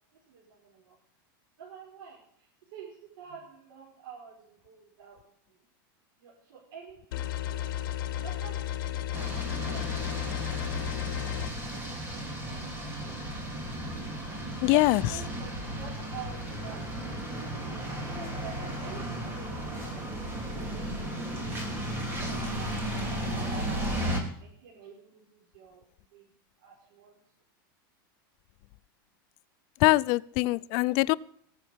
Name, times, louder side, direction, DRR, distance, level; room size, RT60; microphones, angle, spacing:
voice 1, 0.3-1.0 1.6-5.2 5.5-5.6 6.2-7.6 8.0-8.6 8.9-10.5 11.7-13.1 14.6-25.8 26.1-26.3 26.6-27.2, right 7 dB, 75° right, -4 dB, 5.2 m, -49 dB
sound 1, 7.1-11.5, left 12 dB, 65° left, 1.6 m, -33 dB
sound 2, 9.1-24.2, right 1 dB, 20° right, 3.2 m, -34 dB
voice 2, 14.6-15.0 29.8-31.1, left 21 dB, 45° left, 16 dB, 0.5 m, -23 dB
20.0 x 7.3 x 5.2 m, 0.62 s
supercardioid pair, 160°, 12 cm